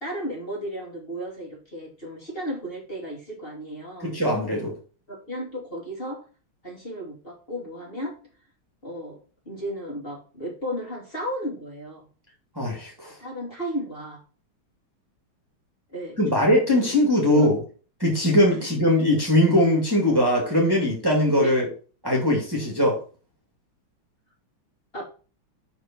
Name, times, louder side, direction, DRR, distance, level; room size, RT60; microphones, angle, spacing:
voice 1, 0.0-4.1 5.1-6.2 6.6-8.1 8.8-9.2 9.5-12.1 13.0-14.2 15.9-16.4 16.8-17.0 17.3-17.5 18.6-18.7 21.4-21.5 24.9-25.0, equal, 25° left, -2 dB, 3.0 m, -34 dB
voice 2, 4.0-4.7 12.6-13.1 16.2-17.6 18.0-21.7 22.0-23.0, left 1 dB, 10° right, -2 dB, 2.5 m, -21 dB
6.7 x 6.4 x 4.5 m, 0.36 s
omnidirectional pair, 2.3 m